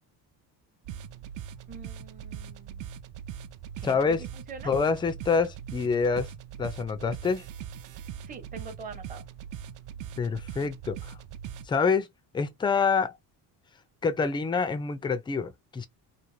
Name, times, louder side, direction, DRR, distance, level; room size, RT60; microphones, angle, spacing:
sound 1, 0.8-11.7, right 9 dB, 55° right, 0.4 m, -41 dB
voice 1, 1.7-2.9 3.8-4.0 4.3-4.7 8.3-9.2, right 4 dB, 20° right, 0.7 m, -44 dB
voice 2, 3.8-4.2 4.6-6.3 6.6-7.4 10.2-11.1 11.7-12.1 12.3-13.1 14.0-15.9, left 5 dB, 15° left, 0.3 m, -26 dB
2.5 x 2.5 x 3.1 m
cardioid pair, 120°, 40 cm